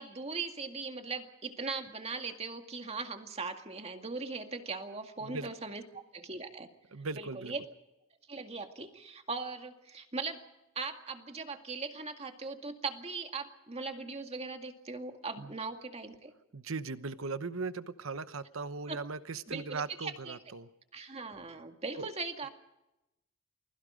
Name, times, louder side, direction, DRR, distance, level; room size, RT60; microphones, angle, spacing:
voice 1, 0.0-6.7 7.1-7.6 8.3-10.4 10.8-16.3 18.9-19.0 19.5-20.4 20.9-22.5, right 4 dB, 30° right, 5 dB, 2.1 m, -39 dB
voice 2, 6.9-7.5 15.4-15.5 16.5-20.7 22.0-22.1, right 4 dB, 75° right, 13 dB, 0.9 m, -38 dB
29.0 x 21.0 x 5.1 m, 0.94 s
head